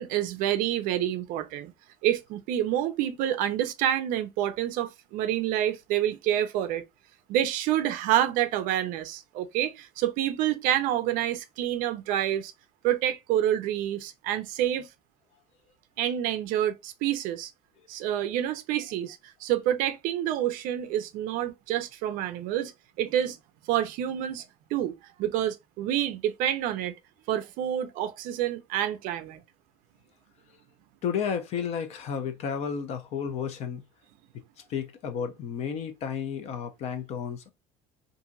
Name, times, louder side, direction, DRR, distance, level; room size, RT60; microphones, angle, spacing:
voice 1, 0.0-1.7 2.0-6.8 7.3-12.5 12.8-14.9 16.0-17.5 17.9-22.7 23.0-23.4 23.7-24.4 24.7-26.9 27.3-29.4, right 11 dB, 55° right, 0.4 m, -28 dB
voice 2, 31.0-33.8 34.6-37.5, left 7 dB, 40° left, 0.5 m, -32 dB
2.9 x 2.5 x 2.5 m
cardioid pair, 180°, 17 cm